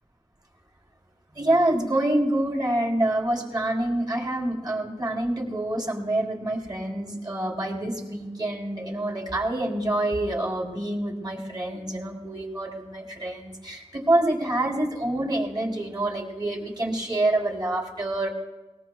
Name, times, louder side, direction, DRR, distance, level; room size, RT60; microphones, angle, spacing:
voice 1, 1.4-18.3, right 1 dB, 35° right, 0 dB, 3.6 m, -26 dB
22.0 x 20.0 x 2.3 m, 1.1 s
wide cardioid pair, 65°, 12 cm